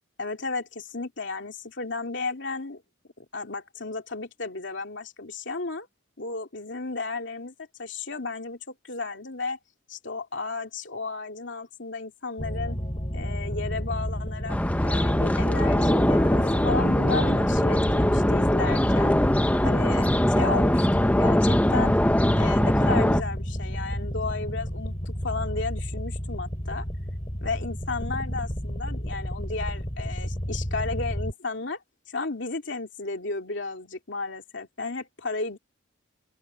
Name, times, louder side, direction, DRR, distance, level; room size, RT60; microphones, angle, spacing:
voice 1, 0.2-2.8 3.2-5.9 6.2-9.6 9.9-12.8 13.1-19.2 19.6-21.9 22.4-26.9 27.4-31.8 32.1-35.6, left 3 dB, 65° left, 3.0 m, -33 dB
sound 1, 12.4-31.3, equal, 30° left, 4.7 m, -31 dB
sound 2, 14.5-23.2, left 1 dB, 5° left, 0.7 m, -22 dB
open air
head